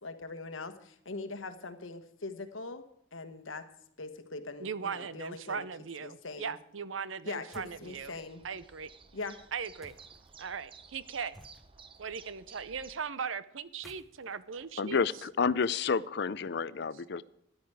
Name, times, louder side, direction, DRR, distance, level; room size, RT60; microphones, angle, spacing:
voice 1, 0.0-3.7 4.0-5.7 6.0-6.6 7.2-8.5 9.1-9.4, left 3 dB, 90° left, 10 dB, 1.3 m, -42 dB
voice 2, 4.6-8.1 8.4-8.9 9.5-9.9 10.4-11.3 12.0-15.0, right 6 dB, 80° right, 16 dB, 0.7 m, -38 dB
sound 1, 7.5-7.9 9.8-10.3 11.3-12.0 13.6-15.6, equal, ahead, 0.9 m, -57 dB
sound 2, 7.8-13.0, right 5 dB, 25° right, 0.7 m, -55 dB
voice 3, 14.8-17.2, left 5 dB, 60° left, 18 dB, 0.5 m, -30 dB
13.5 x 11.5 x 4.8 m, 0.73 s
head